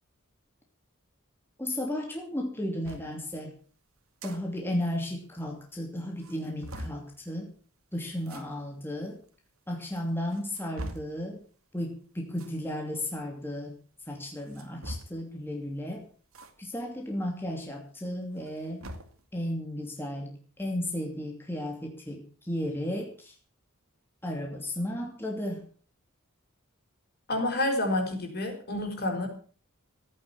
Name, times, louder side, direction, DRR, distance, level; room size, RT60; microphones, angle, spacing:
voice 1, 1.6-3.5 4.2-7.5 7.9-9.2 9.7-11.4 11.7-13.8 14.1-16.1 16.6-18.9 19.3-23.4 24.2-25.7, left 1 dB, 10° left, 1 dB, 2.7 m, -34 dB
sound 1, 2.8-3.1 4.0-4.4 4.7-4.8 5.1-5.2 5.7-5.8 6.2-7.0 8.2-8.4 9.3-9.4 10.1-11.2 12.3-12.6 14.4-15.3 16.3-16.5 16.9-17.0 18.3-19.2, right 1 dB, 75° right, 2.5 m, -41 dB
voice 2, 27.3-29.3, left 1 dB, 50° left, 4 dB, 5.0 m, -29 dB
16.0 x 9.4 x 7.3 m, 0.42 s
head